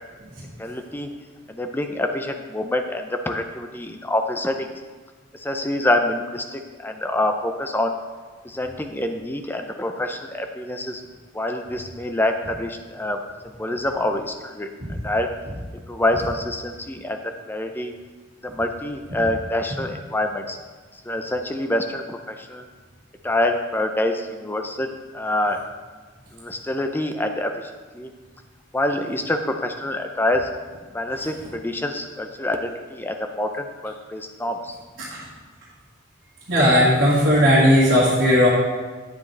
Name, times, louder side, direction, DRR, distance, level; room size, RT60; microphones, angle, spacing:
voice 1, 0.6-1.1 1.5-4.7 5.3-7.9 8.4-11.0 11.3-13.2 13.6-15.3 15.9-17.2 17.5-17.9 18.4-20.6 21.1-22.6 23.2-25.6 26.3-27.5 27.9-28.1 28.7-30.5 30.9-34.8, left 1 dB, 10° left, 5 dB, 0.5 m, -26 dB
voice 2, 36.5-38.5, equal, 55° right, -8 dB, 1.9 m, -16 dB
9.3 x 7.6 x 3.3 m, 1.4 s
head